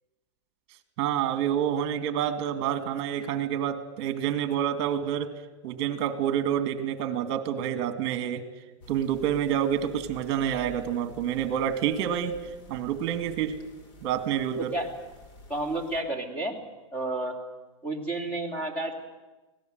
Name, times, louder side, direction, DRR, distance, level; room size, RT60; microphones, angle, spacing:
voice 1, 1.0-5.3 5.6-8.4 8.9-12.4 12.7-13.6 14.0-14.8, right 9 dB, 35° right, 9 dB, 2.2 m, -28 dB
sound 1, 8.8-16.0, left 2 dB, 45° left, 4.4 m, -49 dB
voice 2, 15.5-16.6 16.9-17.3 17.8-19.0, right 2 dB, 10° left, 2 dB, 3.1 m, -31 dB
24.5 x 17.5 x 8.0 m, 1.2 s
supercardioid pair, 155°, 16 cm